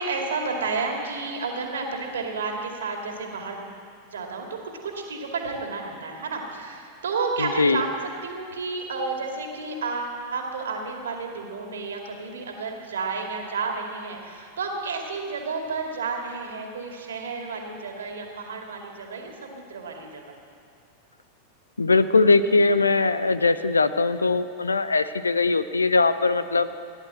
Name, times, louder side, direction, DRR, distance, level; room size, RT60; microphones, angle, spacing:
voice 1, 0.0-3.7 4.1-4.6 4.8-7.9 8.2-20.4, right 4 dB, 65° right, 2 dB, 2.3 m, -31 dB
voice 2, 7.4-7.8 21.8-26.8, left 3 dB, 75° left, 13 dB, 0.6 m, -21 dB
16.0 x 11.0 x 7.7 m, 2.5 s
figure-of-eight pair, 90°, 0 cm